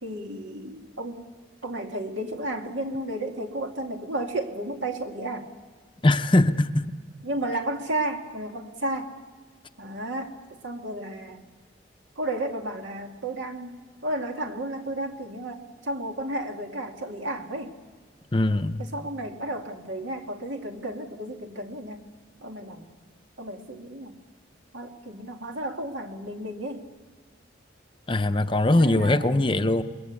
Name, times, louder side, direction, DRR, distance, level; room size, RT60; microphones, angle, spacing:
voice 1, 0.0-1.3 1.6-5.5 7.2-9.1 9.8-11.4 12.2-17.7 18.8-22.0 22.4-23.0 23.4-24.2 24.7-26.9 28.7-29.4, right 1 dB, 80° right, 3 dB, 2.3 m, -33 dB
voice 2, 6.0-6.9 18.3-18.8 28.1-29.8, left 2 dB, 25° left, 9 dB, 0.7 m, -21 dB
27.5 x 22.0 x 8.3 m, 1.5 s
head